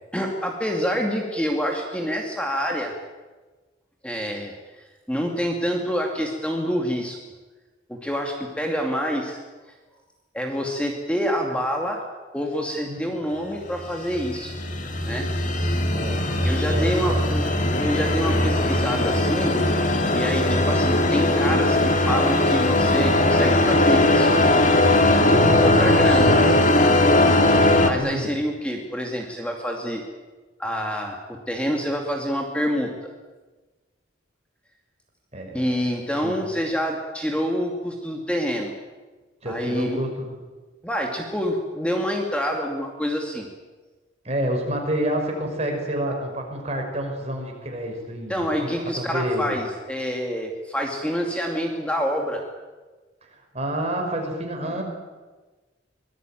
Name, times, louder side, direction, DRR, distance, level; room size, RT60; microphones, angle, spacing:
voice 1, 0.1-2.9 4.0-7.2 7.9-9.4 10.3-12.0 12.3-14.5 15.0-15.3 16.4-17.5 17.8-19.5 20.1-24.4 25.4-26.4 27.8-30.0 30.6-31.2 31.5-33.1 35.5-38.7 39.5-40.0 40.8-43.5 48.3-52.4 54.6-54.8, equal, 5° left, 1 dB, 2.4 m, -27 dB
sound 1, 13.8-27.9, left 1 dB, 40° left, 2.2 m, -19 dB
voice 2, 15.9-17.2 18.3-18.6 27.9-28.3 35.3-35.8 36.2-36.4 39.4-40.3 44.2-48.7 48.9-49.6 53.3-54.8, right 1 dB, 35° right, 2 dB, 5.6 m, -29 dB
25.0 x 19.5 x 9.2 m, 1.3 s
head